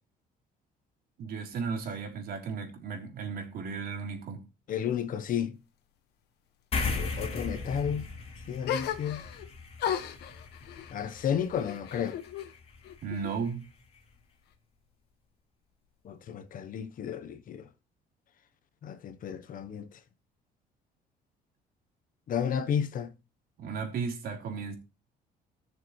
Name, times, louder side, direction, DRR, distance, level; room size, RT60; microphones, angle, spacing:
voice 1, 1.2-4.5 13.0-13.6 23.6-24.8, right 5 dB, 65° right, 3.5 m, -35 dB
voice 2, 4.7-5.6 6.9-8.1 8.5-9.2 10.9-12.2 16.0-17.7 18.8-19.9 22.3-23.1, left 8 dB, 55° left, 1.1 m, -32 dB
sound 1, 6.7-13.5, left 4 dB, 35° left, 3.5 m, -38 dB
sound 2, 8.6-9.5 9.8-12.5 12.8-13.7, left 9 dB, 75° left, 1.6 m, -36 dB
17.5 x 6.8 x 3.2 m
cardioid pair, 110°, 17 cm